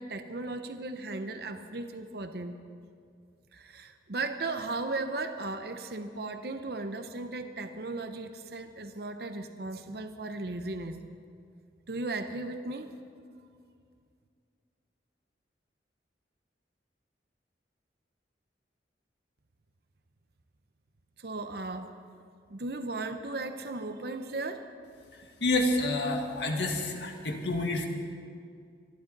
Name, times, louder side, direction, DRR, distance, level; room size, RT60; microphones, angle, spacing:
voice 1, 0.0-2.6 3.5-11.0 11.9-12.9 21.2-21.9 22.5-24.7, right 2 dB, 60° right, 8 dB, 0.8 m, -36 dB
voice 2, 25.1-27.9, left 2 dB, 75° left, 2 dB, 1.8 m, -29 dB
25.0 x 11.5 x 4.0 m, 2.3 s
head